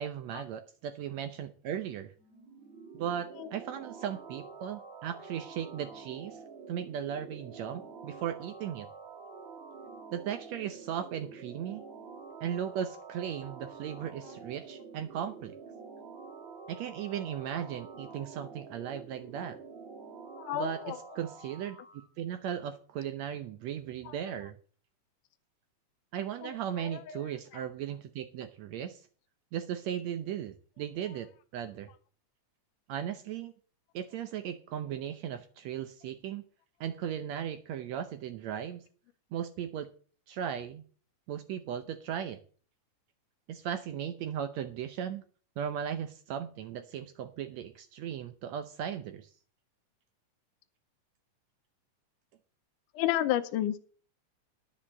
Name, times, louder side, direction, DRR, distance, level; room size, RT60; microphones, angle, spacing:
voice 1, 0.0-2.1 2.9-6.4 6.7-8.9 10.1-11.8 12.4-15.5 16.7-19.6 20.5-20.8 21.2-21.8 22.2-24.6 26.1-29.1 29.5-31.9 32.9-33.5 33.9-36.4 36.8-38.8 39.3-39.9 40.3-40.8 41.3-42.4 43.5-45.2 45.6-49.3, right 9 dB, 75° right, 9 dB, 1.6 m, -37 dB
sound 1, 2.2-22.1, right 5 dB, 55° right, 2.9 m, -48 dB
voice 2, 20.4-21.0 24.1-24.2 26.4-27.6 52.9-53.8, left 12 dB, 80° left, 8 dB, 2.1 m, -32 dB
10.5 x 6.6 x 7.2 m, 0.42 s
omnidirectional pair, 3.9 m